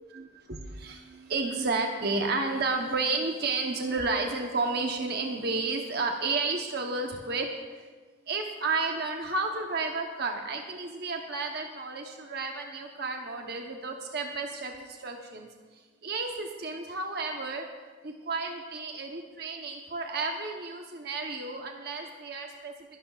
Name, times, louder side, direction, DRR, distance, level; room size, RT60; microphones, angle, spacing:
voice 1, 0.1-7.9 8.3-15.5 16.0-17.7 18.0-22.7, right 3 dB, 55° right, 2 dB, 1.0 m, -32 dB
22.0 x 11.5 x 2.4 m, 1.4 s
head